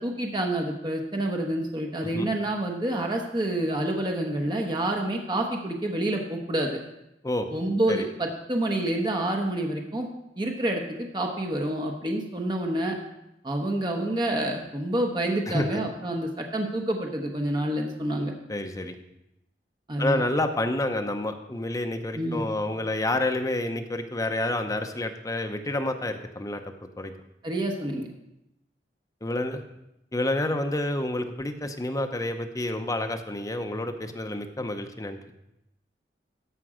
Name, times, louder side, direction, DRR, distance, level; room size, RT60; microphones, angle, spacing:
voice 1, 0.0-6.8 7.5-10.1 10.4-13.0 13.4-18.3 19.9-20.2 22.1-22.4 27.4-28.1, right 1 dB, 25° right, 2 dB, 1.0 m, -28 dB
voice 2, 15.5-15.8 18.5-19.0 20.0-26.6 27.0-27.1 29.2-29.6 30.1-35.2, left 1 dB, 20° left, 5 dB, 0.7 m, -29 dB
13.5 x 5.3 x 4.9 m, 0.85 s
head